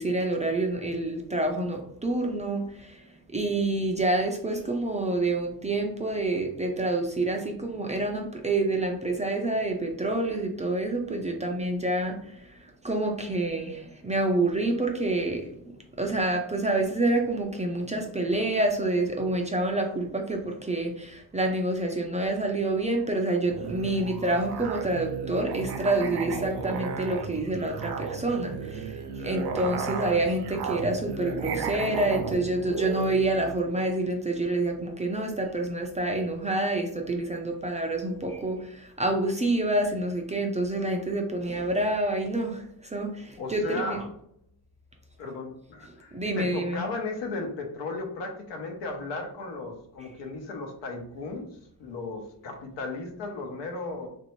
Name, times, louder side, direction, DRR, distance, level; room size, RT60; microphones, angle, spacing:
voice 1, 0.0-3.0 3.3-12.5 12.8-28.9 29.2-44.0 46.1-46.8, right 2 dB, 20° right, 2 dB, 0.3 m, -27 dB
Musical instrument, 23.4-33.6, right 5 dB, 70° right, 0.6 m, -34 dB
voice 2, 43.4-44.1 45.2-51.5 51.8-54.1, left 3 dB, 85° left, 3 dB, 0.9 m, -35 dB
3.2 x 2.6 x 3.0 m, 0.72 s
cardioid pair, 115°, 42 cm